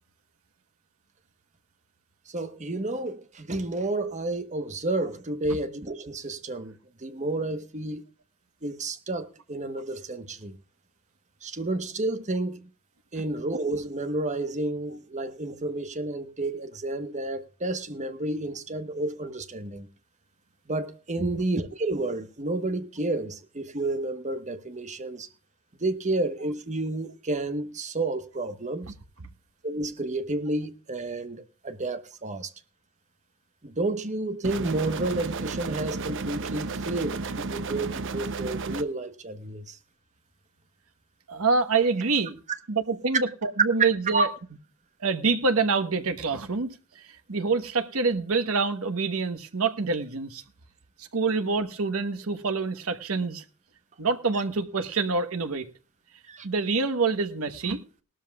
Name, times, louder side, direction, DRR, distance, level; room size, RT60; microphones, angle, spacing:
voice 1, 2.3-6.7 7.0-8.0 8.6-10.6 11.4-12.6 13.1-19.9 20.7-25.3 25.8-28.9 29.6-32.5 33.6-39.8 44.1-44.2 56.3-56.5, right 2 dB, 35° right, 1.1 m, -30 dB
sound 1, 34.4-38.8, right 4 dB, 60° right, 0.7 m, -33 dB
voice 2, 41.3-42.3 42.7-44.3 45.0-50.4 51.0-53.4 54.0-55.7 56.4-57.8, right 4 dB, 80° right, 1.1 m, -26 dB
19.0 x 12.5 x 2.3 m
head